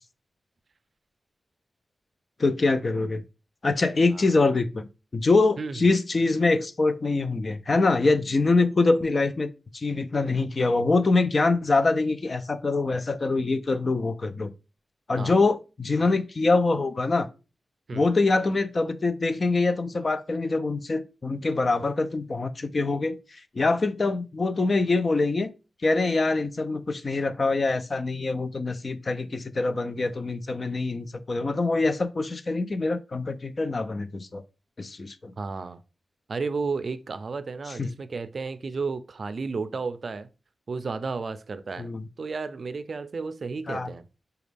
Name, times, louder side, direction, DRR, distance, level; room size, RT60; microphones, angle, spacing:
voice 1, 2.4-3.2 3.6-4.9 5.1-14.5 15.1-17.3 17.9-25.5 25.8-34.4 34.8-35.3 37.8-37.9 41.8-42.0 43.7-43.9, left 3 dB, 50° left, 0.4 m, -24 dB
voice 2, 35.4-35.8 36.3-40.3 40.7-41.9 42.2-44.0, right 4 dB, 60° right, 0.4 m, -32 dB
5.8 x 2.3 x 3.3 m
cardioid pair, 70°, 0 cm